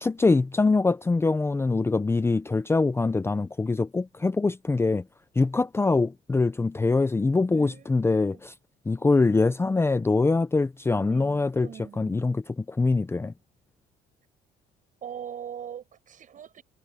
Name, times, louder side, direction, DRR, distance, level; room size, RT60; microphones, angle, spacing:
voice 1, 0.0-5.0 5.4-8.5 8.9-11.7 12.0-13.3, left 3 dB, 15° left, 0.6 m, -24 dB
voice 2, 7.5-8.0 8.3-8.4 10.9-12.3 15.0-16.6, right 9 dB, 50° right, 7.4 m, -42 dB
cardioid pair, 110°, 17 cm